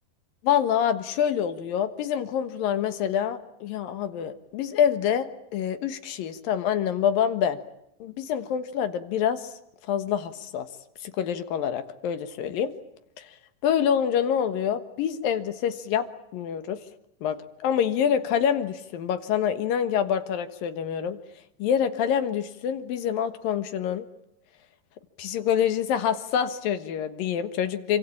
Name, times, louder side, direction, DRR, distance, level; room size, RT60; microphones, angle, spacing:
voice 1, 0.4-7.6 8.0-9.4 9.9-10.7 11.0-12.7 13.6-16.1 16.3-16.8 17.2-17.4 17.6-21.2 21.6-24.1 25.2-28.0, left 8 dB, 80° left, 10 dB, 3.2 m, -26 dB
27.5 x 25.0 x 8.7 m, 0.77 s
omnidirectional pair, 4.0 m